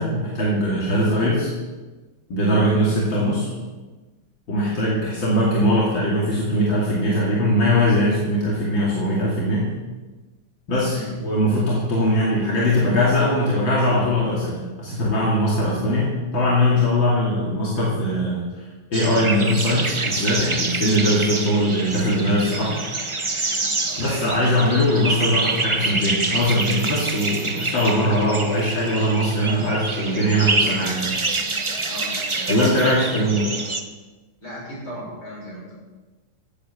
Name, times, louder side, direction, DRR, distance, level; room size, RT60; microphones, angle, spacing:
voice 1, 0.0-1.5 2.3-3.5 4.5-9.7 10.7-22.8 24.0-31.1 32.5-33.5, equal, 75° left, -6 dB, 3.4 m, -21 dB
sound 1, 18.9-33.8, right 3 dB, 30° right, 0.5 m, -26 dB
voice 2, 23.9-24.5 31.9-33.2 34.4-35.7, equal, 45° left, -5 dB, 7.0 m, -37 dB
16.0 x 8.4 x 7.2 m, 1.2 s
omnidirectional pair, 2.1 m